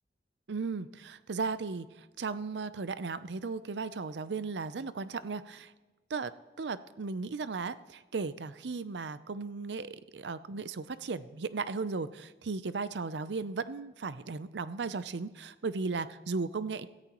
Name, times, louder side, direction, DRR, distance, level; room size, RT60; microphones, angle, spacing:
voice 1, 0.5-5.7 6.1-6.3 6.6-16.9, right 4 dB, 90° right, 14 dB, 0.6 m, -36 dB
17.0 x 14.0 x 3.0 m, 1.2 s
head